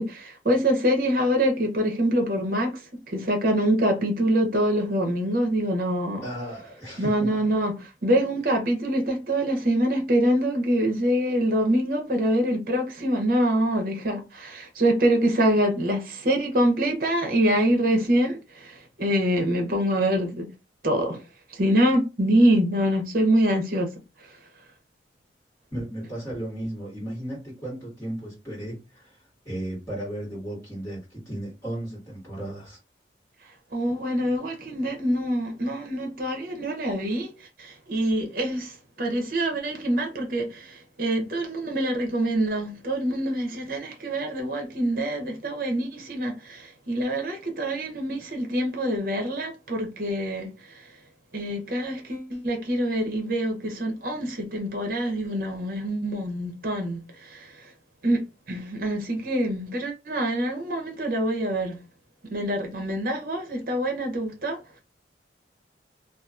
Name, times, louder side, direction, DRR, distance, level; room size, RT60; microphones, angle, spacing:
voice 1, 0.0-6.2 7.0-20.5 20.8-21.2 21.5-23.9 24.2-24.4 33.7-51.0 51.3-57.7 58.0-61.8 62.3-64.8, right 1 dB, 50° right, 0.7 m, -25 dB
voice 2, 6.2-7.3 25.7-29.1 29.4-32.8, right 1 dB, 15° left, 1.6 m, -35 dB
2.8 x 2.4 x 2.4 m
head